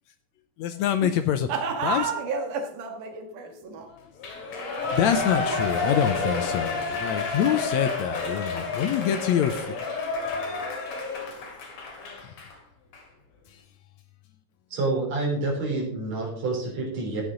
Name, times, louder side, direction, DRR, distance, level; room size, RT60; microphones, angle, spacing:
voice 1, 0.6-1.5 1.8-2.0 3.9-4.0 4.9-9.8 12.2-12.3, left 9 dB, 75° left, 1.8 m, -25 dB
voice 2, 1.5-3.9 5.5-6.5, right 5 dB, 85° right, 3.0 m, -31 dB
Shout / Cheering, 4.2-12.5 12.9-13.0, left 3 dB, 60° left, 3.2 m, -30 dB
voice 3, 14.7-17.2, right 3 dB, 55° right, 4.7 m, -28 dB
13.5 x 9.8 x 3.8 m
omnidirectional pair, 3.6 m